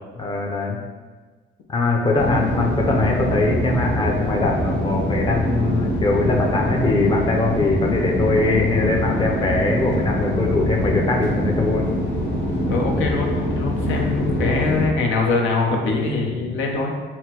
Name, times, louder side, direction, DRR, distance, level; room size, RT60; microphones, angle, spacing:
voice 1, 0.2-0.8 1.7-11.8, left 3 dB, 25° left, 0 dB, 0.6 m, -21 dB
sound 1, 2.2-14.9, equal, 65° left, 1.3 m, -24 dB
voice 2, 12.7-16.9, left 3 dB, 80° left, 0 dB, 0.7 m, -23 dB
5.7 x 2.1 x 2.9 m, 1.4 s
cardioid pair, 90°, 20 cm